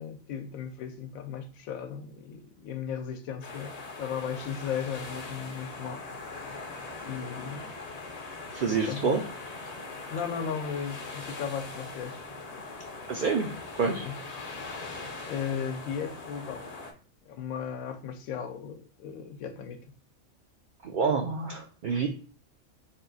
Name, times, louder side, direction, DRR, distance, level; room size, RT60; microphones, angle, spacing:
voice 1, 0.0-6.1 6.4-6.5 7.0-7.7 8.7-9.2 10.1-12.2 14.0-14.2 15.3-16.7 17.3-19.8, left 7 dB, 90° left, 1.0 m, -36 dB
sound 1, 3.4-16.9, left 3 dB, 50° left, 0.5 m, -41 dB
voice 2, 8.5-9.2 13.1-14.1 20.8-22.1, right 5 dB, 85° right, 0.4 m, -28 dB
3.6 x 2.4 x 3.8 m
omnidirectional pair, 1.4 m